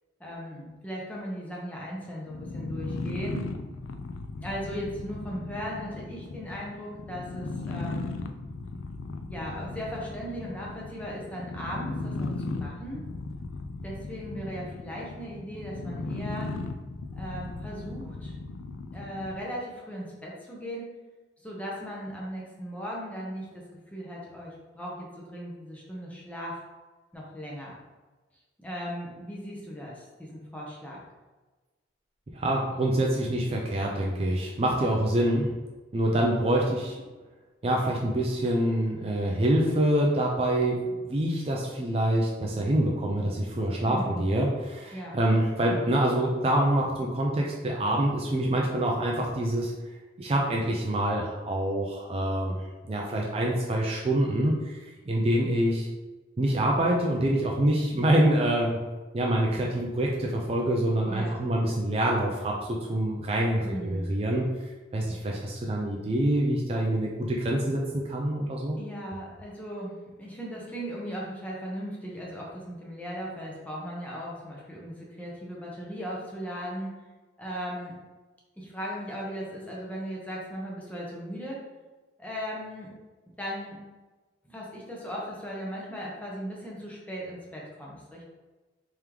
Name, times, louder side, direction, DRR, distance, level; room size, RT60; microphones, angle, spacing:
voice 1, 0.2-3.5 4.4-8.1 9.3-13.0 13.8-16.5 17.2-18.3 18.9-21.0 21.4-23.6 23.9-26.6 27.1-27.8 28.6-31.0 43.8-44.2 44.9-45.1 61.1-61.4 63.6-64.1 68.8-77.0 77.4-77.9 78.6-81.6 82.2-82.9 83.4-83.8 84.4-88.2, equal, 10° left, -4 dB, 0.7 m, -37 dB
sound 1, 2.3-19.5, left 3 dB, 85° left, 0.3 m, -36 dB
voice 2, 32.3-35.5 35.9-37.0 37.6-49.7 50.2-52.5 52.9-54.8 55.1-55.9 56.4-58.8 59.1-62.6 62.9-64.5 64.9-68.8, right 1 dB, 30° right, -2 dB, 0.4 m, -26 dB
3.5 x 3.4 x 3.0 m, 1.2 s
head